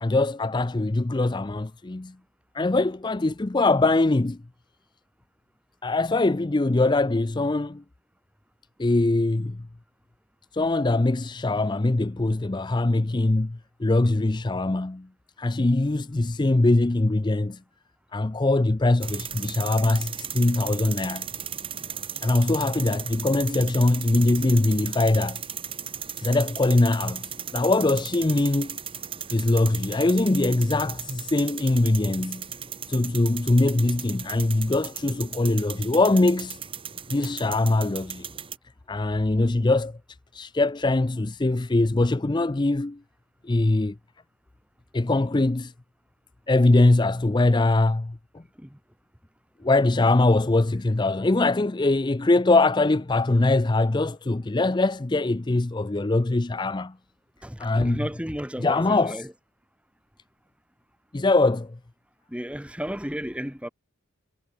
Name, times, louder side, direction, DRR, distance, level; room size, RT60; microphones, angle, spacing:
voice 1, 0.0-2.1 2.5-4.4 5.8-7.8 8.8-9.6 10.5-15.1 15.4-17.6 18.1-21.3 22.2-25.4 26.2-28.8 29.3-32.5 32.9-36.6 37.1-38.3 38.9-40.0 40.3-43.0 43.4-44.0 44.9-45.7 46.5-48.2 49.6-56.9 57.6-58.1 58.6-59.3 61.1-61.8, left 2 dB, 20° left, 0.5 m, -22 dB
sound 1, 19.0-38.6, right 8 dB, 25° right, 4.4 m, -36 dB
voice 2, 57.4-59.3 62.3-63.7, equal, 5° right, 3.1 m, -33 dB
head